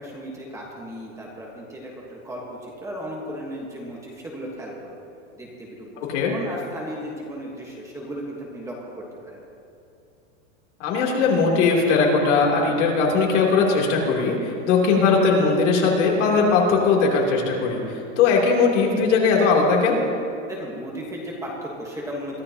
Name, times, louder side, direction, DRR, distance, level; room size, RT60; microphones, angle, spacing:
voice 1, 0.0-5.0 5.4-6.0 6.3-9.4 20.5-22.4, equal, 10° right, -3 dB, 1.3 m, -35 dB
voice 2, 10.8-17.8 18.2-20.0, left 4 dB, 70° left, -2 dB, 3.2 m, -19 dB
22.5 x 13.0 x 2.9 m, 2.6 s
supercardioid pair, 175°, 37 cm